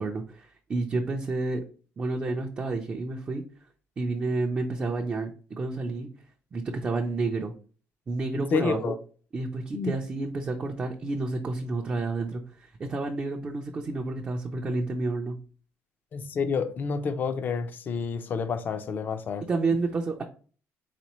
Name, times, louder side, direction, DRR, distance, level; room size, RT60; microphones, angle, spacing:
voice 1, 0.0-1.6 2.0-3.4 4.0-6.1 6.5-7.5 8.1-8.9 9.3-15.4 19.4-20.2, right 3 dB, 25° right, 0.5 m, -30 dB
voice 2, 8.5-8.9 9.7-9.9 16.1-19.4, left 5 dB, 35° left, 0.5 m, -29 dB
4.1 x 4.1 x 3.0 m
cardioid pair, 165°, 6 cm